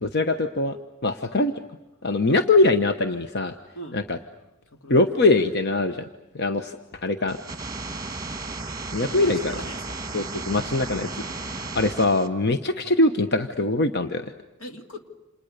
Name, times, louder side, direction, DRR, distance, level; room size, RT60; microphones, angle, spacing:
voice 1, 0.0-0.8 1.0-1.5 2.0-3.5 3.9-4.2 4.9-6.1 6.3-6.8 7.0-7.4 8.9-9.5 10.1-11.1 11.4-14.3, left 2 dB, 55° left, 8 dB, 1.1 m, -22 dB
voice 2, 4.7-5.0 9.0-10.1 14.6-15.0, equal, 80° left, 5 dB, 3.0 m, -40 dB
sound 1, 7.3-12.3, right 3 dB, 20° right, 1.8 m, -34 dB
30.0 x 28.0 x 6.7 m, 1.0 s
head